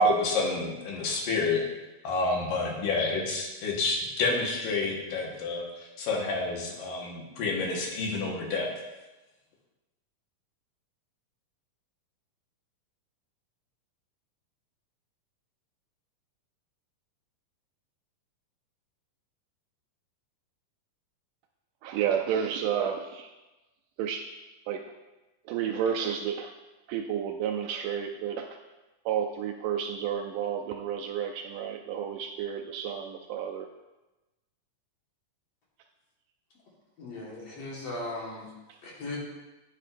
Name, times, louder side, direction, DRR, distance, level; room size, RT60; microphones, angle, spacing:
voice 1, 0.0-1.6 2.0-5.6 6.0-8.7, left 2 dB, 80° left, -1 dB, 3.0 m, -28 dB
voice 2, 21.8-23.3 24.0-24.3 24.7-24.8 25.5-26.5 26.9-28.6 29.1-33.7 38.7-38.8, right 8 dB, 80° right, 3 dB, 1.9 m, -31 dB
voice 3, 37.0-38.5 38.8-39.2, left 2 dB, 50° left, -4 dB, 2.4 m, -37 dB
9.6 x 9.3 x 2.5 m, 1.1 s
omnidirectional pair, 4.0 m